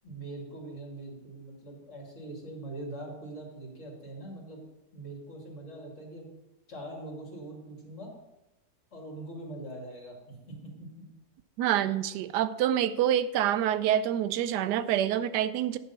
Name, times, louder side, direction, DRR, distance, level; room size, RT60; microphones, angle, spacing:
voice 1, 0.0-4.6 4.9-6.3 6.7-8.1 8.9-11.1, right 2 dB, 45° left, -2 dB, 2.8 m, -42 dB
voice 2, 11.6-15.8, right 11 dB, 90° right, 14 dB, 1.2 m, -27 dB
10.0 x 5.5 x 5.5 m, 0.97 s
omnidirectional pair, 1.7 m